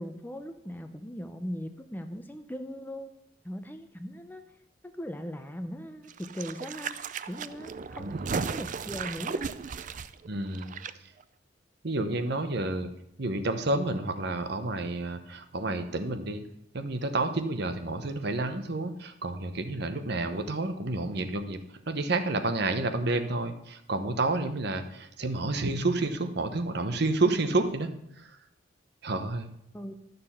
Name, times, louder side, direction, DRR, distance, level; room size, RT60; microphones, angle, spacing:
voice 1, 0.0-3.1 3.4-4.4 4.8-6.9 7.3-9.5 29.7-29.9, equal, 10° left, 7 dB, 0.6 m, -39 dB
sound 1, 6.1-10.9 11.2-11.3, right 5 dB, 40° right, 0.4 m, -35 dB
voice 2, 8.0-8.3 10.2-10.7 11.8-12.9 13.2-16.4 16.7-27.9 28.2-28.3 29.0-29.5, right 2 dB, 60° right, 8 dB, 0.9 m, -30 dB
12.0 x 6.8 x 5.6 m, 0.75 s
head